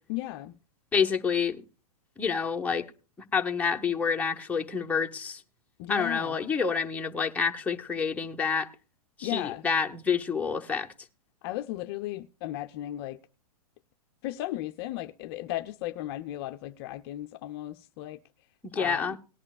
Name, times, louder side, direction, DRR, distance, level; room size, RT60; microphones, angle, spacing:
voice 1, 0.1-0.5 5.8-6.4 9.2-9.6 11.4-13.2 14.2-18.2 18.7-19.2, left 15 dB, 40° left, 0.5 m, -35 dB
voice 2, 0.9-1.6 2.2-2.8 3.3-5.4 5.9-8.7 9.2-10.9 18.6-19.2, left 6 dB, 5° left, 0.8 m, -28 dB
18.0 x 11.0 x 2.3 m
hypercardioid pair, 125°, 20 cm